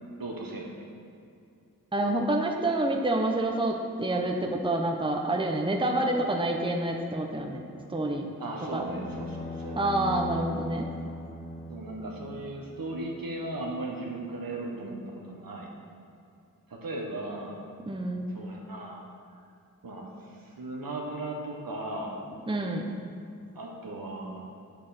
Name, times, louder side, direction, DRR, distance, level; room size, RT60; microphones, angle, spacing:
voice 1, 0.2-0.7 8.4-9.8 11.7-15.7 16.7-17.6 18.3-19.0 19.3-19.4 19.8-22.2 23.5-24.5, right 2 dB, 75° right, -1 dB, 1.4 m, -37 dB
voice 2, 1.9-7.6 7.9-8.3 8.7-8.9 9.8-10.9 17.8-18.3 22.5-22.8, right 1 dB, 15° right, 2 dB, 0.8 m, -28 dB
sound 1, 8.7-13.0, left 1 dB, 25° left, 1.2 m, -38 dB
8.6 x 7.6 x 4.3 m, 2.5 s
wide cardioid pair, 60°, 35 cm